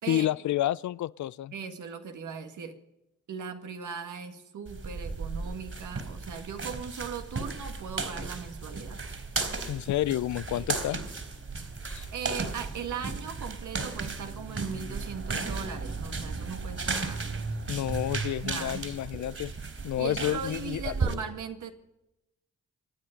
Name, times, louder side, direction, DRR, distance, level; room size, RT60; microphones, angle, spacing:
voice 1, 0.1-1.5 9.7-11.0 11.9-12.1 17.7-19.5 19.8-20.9, left 13 dB, 65° left, 0.5 m, -30 dB
voice 2, 1.5-2.8 3.3-9.0 10.5-10.7 11.6-11.7 12.1-17.6 18.4-18.9 20.0-21.7, right 6 dB, 75° right, 2.0 m, -39 dB
sound 1, 4.7-21.1, right 3 dB, 45° right, 4.0 m, -35 dB
26.5 x 9.9 x 5.2 m
supercardioid pair, 55°, 31 cm